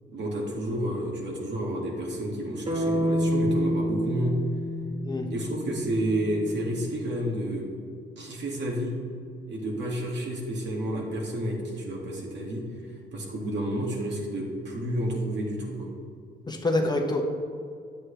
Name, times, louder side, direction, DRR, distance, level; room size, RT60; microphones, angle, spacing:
voice 1, 0.1-4.4 5.3-7.7 8.2-8.9 9.5-12.6 13.1-15.9, right 1 dB, 65° right, -1 dB, 2.1 m, -30 dB
sound 1, 2.7-6.7, equal, 30° right, 2.0 m, -29 dB
voice 2, 16.5-17.2, left 2 dB, 20° left, 2 dB, 0.9 m, -26 dB
9.6 x 7.9 x 3.3 m, 2.3 s
cardioid pair, 90°, 20 cm